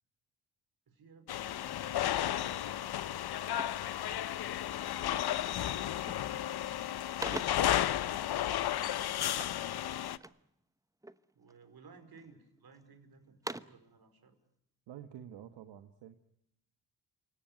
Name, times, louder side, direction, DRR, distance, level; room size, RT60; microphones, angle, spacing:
voice 1, 0.9-3.3 4.4-6.3 7.1-9.6 11.3-14.4, right 4 dB, 60° right, 8 dB, 4.9 m, -61 dB
sound 1, 1.3-10.2, left 12 dB, 65° left, 0.9 m, -33 dB
sound 2, 3.5-4.6 5.3-5.6 5.9-6.4 6.8-7.8 9.3-10.5 11.0-11.7 12.2-12.8 13.2-13.9, right 1 dB, 10° right, 0.9 m, -46 dB
voice 2, 14.9-16.2, right 10 dB, 80° right, 8 dB, 1.4 m, -49 dB
28.5 x 18.0 x 9.3 m, 0.79 s
supercardioid pair, 55°, 42 cm